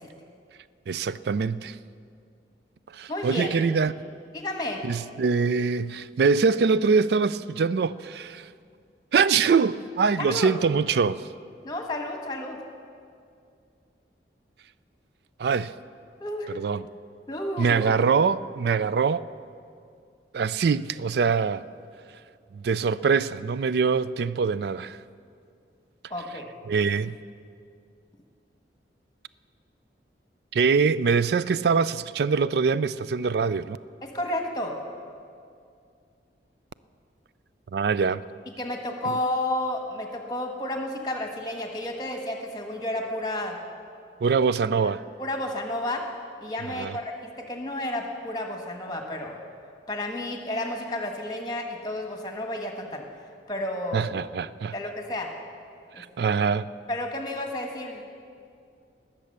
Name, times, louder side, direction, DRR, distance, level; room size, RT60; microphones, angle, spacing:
voice 1, 0.9-1.8 2.9-3.9 4.8-8.5 9.1-11.3 15.4-15.7 16.5-16.8 17.6-19.2 20.3-21.7 22.5-25.0 26.7-27.2 30.5-33.8 37.7-38.2 39.1-39.2 44.2-45.0 46.7-47.0 53.9-54.7 56.0-56.7, right 5 dB, 60° right, 0.3 m, -24 dB
voice 2, 3.1-3.5 4.3-4.8 10.2-10.5 11.6-12.6 16.2-16.6 17.3-17.9 26.1-26.5 34.0-34.7 38.6-43.6 45.2-46.0 46.4-49.3 49.9-53.0 53.5-54.1 54.7-55.3 55.9-56.3 56.9-58.1, left 1 dB, 20° left, 1.3 m, -31 dB
20.0 x 7.5 x 6.7 m
head